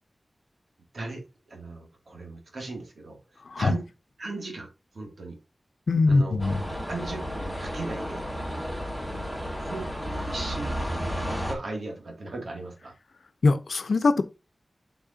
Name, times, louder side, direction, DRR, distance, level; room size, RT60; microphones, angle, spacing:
voice 1, 0.9-3.2 3.6-3.9 4.2-4.7 4.9-5.4 6.1-6.4 6.9-8.3 9.1-9.2 9.5-13.0, right 2 dB, 75° right, 2.6 m, -37 dB
voice 2, 3.5-3.8 5.9-6.6 13.4-14.2, left 3 dB, 90° left, 0.8 m, -22 dB
sound 1, 6.4-11.5, equal, 10° right, 3.4 m, -32 dB
8.9 x 5.9 x 2.9 m
wide cardioid pair, 90°, 0 cm